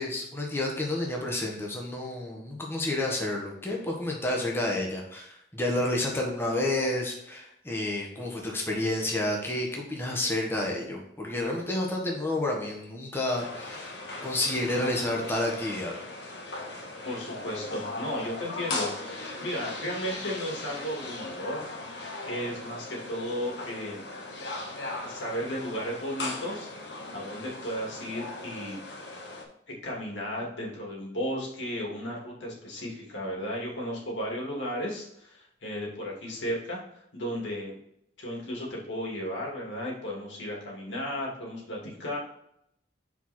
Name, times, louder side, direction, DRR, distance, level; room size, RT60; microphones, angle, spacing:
voice 1, 0.0-15.9, left 1 dB, 15° left, -1 dB, 1.2 m, -30 dB
sound 1, 13.4-29.4, left 2 dB, 65° left, 1.5 m, -38 dB
voice 2, 17.0-21.7 22.2-24.0 25.0-26.7 27.1-28.8 29.8-36.8 37.1-37.8 38.2-42.2, equal, 90° left, -3 dB, 2.5 m, -34 dB
5.6 x 4.9 x 4.3 m, 0.76 s
head